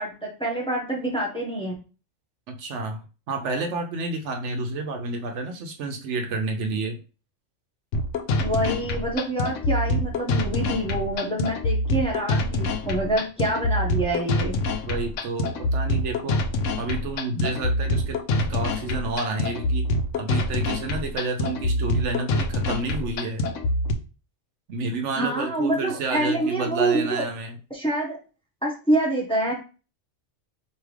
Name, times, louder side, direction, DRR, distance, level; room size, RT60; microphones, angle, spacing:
voice 1, 0.0-1.7 8.4-14.5 25.1-27.2 27.7-28.2 28.6-29.5, right 1 dB, 5° left, -3 dB, 1.1 m, -26 dB
voice 2, 2.5-3.0 3.3-7.0 14.9-16.4 16.7-19.9 20.2-23.5 24.7-27.6, right 3 dB, 75° right, 4 dB, 0.9 m, -30 dB
sound 1, 7.9-23.9, left 1 dB, 80° left, 1.0 m, -25 dB
4.8 x 2.8 x 3.2 m, 0.34 s
omnidirectional pair, 1.3 m